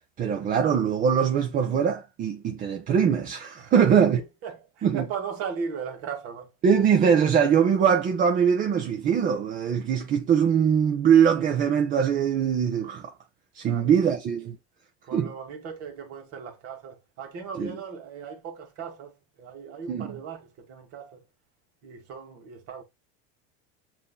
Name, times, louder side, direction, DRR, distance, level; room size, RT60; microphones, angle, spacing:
voice 1, 0.2-4.2 4.8-5.0 6.6-13.1 13.6-14.6 15.1-15.3 17.6-17.8 19.9-20.2, right 7 dB, 25° right, 0.5 m, -22 dB
voice 2, 3.6-6.5 13.6-14.0 15.0-21.2 21.8-22.8, right 6 dB, 45° right, 1.5 m, -37 dB
7.3 x 2.7 x 2.2 m
supercardioid pair, 135°, 32 cm